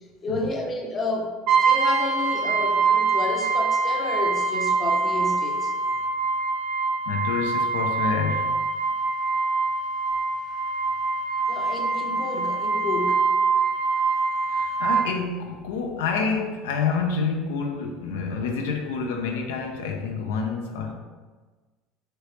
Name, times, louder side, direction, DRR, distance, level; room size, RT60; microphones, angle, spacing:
voice 1, 0.2-5.7 11.5-13.3, left 2 dB, 30° left, 1 dB, 0.6 m, -31 dB
Brass instrument, 1.5-15.1, right 4 dB, 65° right, 0.5 m, -24 dB
voice 2, 7.1-8.5 14.5-20.9, left 5 dB, 90° left, 3 dB, 0.3 m, -28 dB
3.0 x 2.8 x 3.2 m, 1.3 s
supercardioid pair, 105°, 0 cm